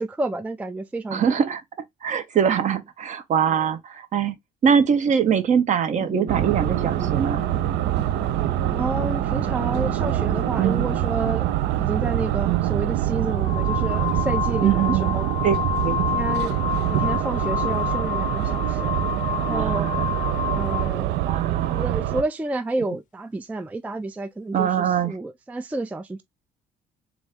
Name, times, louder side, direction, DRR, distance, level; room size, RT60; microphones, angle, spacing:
voice 1, 0.0-1.4 3.5-3.7 8.7-15.2 15.9-18.9 19.3-19.9 20.4-21.2 21.7-26.2, right 2 dB, 10° right, 0.3 m, -30 dB
voice 2, 1.1-1.6 2.0-4.3 4.6-7.4 10.6-10.9 12.5-12.6 14.6-15.2 15.4-15.5 15.8-16.0 19.5-20.1 20.5-20.7 21.2-22.0 24.5-25.1, right 7 dB, 45° right, 0.7 m, -23 dB
sound 1, 5.9-11.0, right 2 dB, 25° right, 1.9 m, -34 dB
sound 2, 6.3-22.2, right 14 dB, 80° right, 0.4 m, -25 dB
sound 3, 12.3-12.5 13.3-21.0, left 11 dB, 50° left, 0.5 m, -29 dB
4.0 x 2.4 x 3.4 m
cardioid pair, 110°, 17 cm